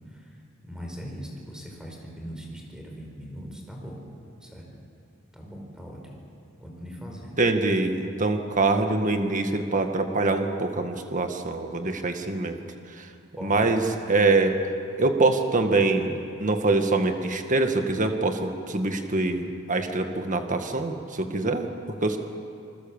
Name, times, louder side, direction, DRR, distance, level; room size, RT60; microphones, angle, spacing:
voice 1, 0.1-0.4 0.6-4.0 4.4-4.7 5.3-6.2 6.6-7.4 13.4-13.7, equal, 5° right, 0 dB, 4.9 m, -40 dB
voice 2, 7.4-12.6 12.9-13.1 13.4-13.8 14.1-14.5 15.0-22.2, right 3 dB, 35° right, 5 dB, 1.8 m, -24 dB
28.0 x 21.0 x 7.3 m, 2.5 s
head